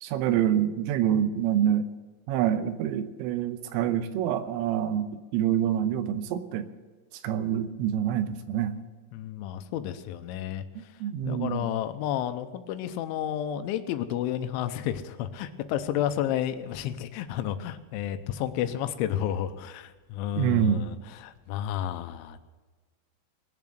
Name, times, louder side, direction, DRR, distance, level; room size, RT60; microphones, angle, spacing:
voice 1, 0.0-1.9 2.3-6.7 7.2-8.8 10.8-11.7 20.4-20.9, right 10 dB, 85° right, 10 dB, 3.3 m, -26 dB
voice 2, 9.1-10.9 11.2-22.4, left 10 dB, 80° left, 10 dB, 3.0 m, -31 dB
20.0 x 7.3 x 7.8 m, 1.3 s
omnidirectional pair, 5.8 m